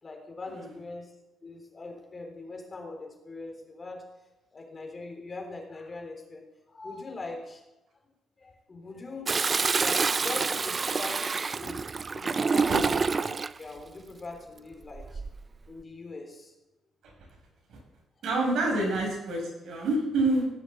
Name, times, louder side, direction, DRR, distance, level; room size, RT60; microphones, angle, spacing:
voice 1, 0.0-1.1 1.4-4.1 4.5-7.6 8.4-9.4 9.7-15.2 15.7-16.5, left 3 dB, 30° left, 2 dB, 3.8 m, -41 dB
Toilet flush, 9.3-13.6 14.9-15.4, right 4 dB, 35° right, 0.4 m, -27 dB
voice 2, 18.2-20.5, right 2 dB, 70° right, -1 dB, 7.0 m, -27 dB
16.5 x 7.5 x 8.4 m, 1.0 s
cardioid pair, 90°, 0 cm